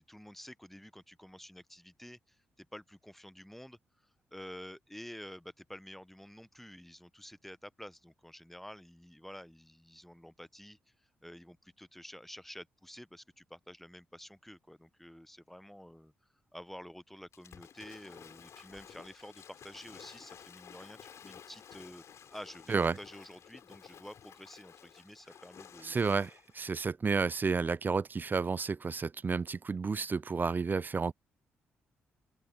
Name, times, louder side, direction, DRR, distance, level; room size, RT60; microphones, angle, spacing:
voice 1, 0.0-3.8 4.3-10.8 11.2-16.1 16.5-22.0 22.3-26.0, equal, 5° left, 1.1 m, -50 dB
Waves surf / Splash splatter, 17.3-26.6, left 8 dB, 60° left, 3.8 m, -54 dB
voice 2, 25.8-31.1, right 4 dB, 35° right, 0.5 m, -31 dB
open air
hypercardioid pair, 40°, 6 cm